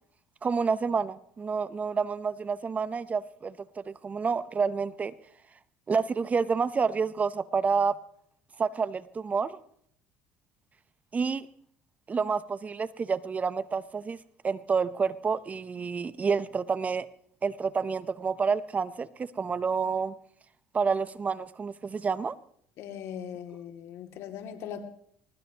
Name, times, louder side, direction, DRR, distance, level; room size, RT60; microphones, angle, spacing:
voice 1, 0.4-3.5 3.9-5.1 5.9-8.0 8.6-9.6 11.1-11.5 12.1-14.2 14.4-17.1 17.4-20.1 20.7-22.4, right 5 dB, 30° right, 16 dB, 0.8 m, -29 dB
voice 2, 22.8-24.9, left 8 dB, 65° left, 6 dB, 2.6 m, -39 dB
21.0 x 20.0 x 3.0 m, 0.65 s
supercardioid pair, 90°, 5 cm